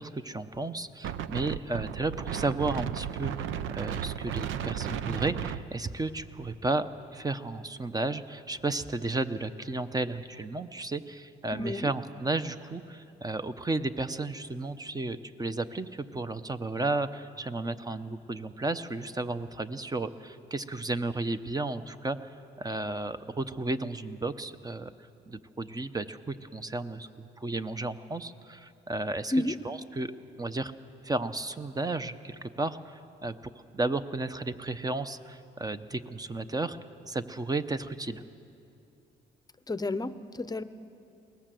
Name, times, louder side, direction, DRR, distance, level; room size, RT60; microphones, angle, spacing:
voice 1, 0.0-24.9 25.3-29.3 29.6-30.1 30.4-30.7 31.0-36.8 37.1-38.2, right 2 dB, 20° right, 11 dB, 0.8 m, -33 dB
Wind, 1.0-6.5, right 9 dB, 85° right, 0.7 m, -35 dB
voice 2, 11.5-11.9 29.3-29.6 39.7-40.6, left 2 dB, 20° left, 13 dB, 0.8 m, -30 dB
21.5 x 19.0 x 7.7 m, 2.6 s
cardioid pair, 90°, 20 cm